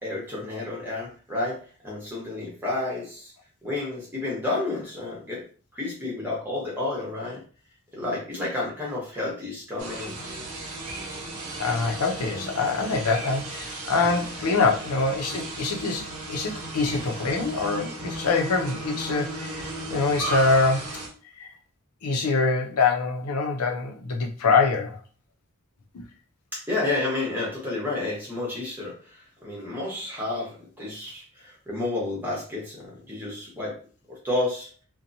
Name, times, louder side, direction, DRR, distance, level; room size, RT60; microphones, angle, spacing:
voice 1, 0.0-3.3 3.6-5.4 5.7-7.4 7.9-10.2 26.5-33.8 34.1-34.7, left 2 dB, 10° right, 1.0 m, -31 dB
sound 1, 9.8-21.1, right 2 dB, 90° right, 0.8 m, -35 dB
voice 2, 11.6-21.0 21.4-21.5 22.0-25.0 25.9-26.0, left 4 dB, 85° left, 0.6 m, -25 dB
2.8 x 2.1 x 2.6 m
head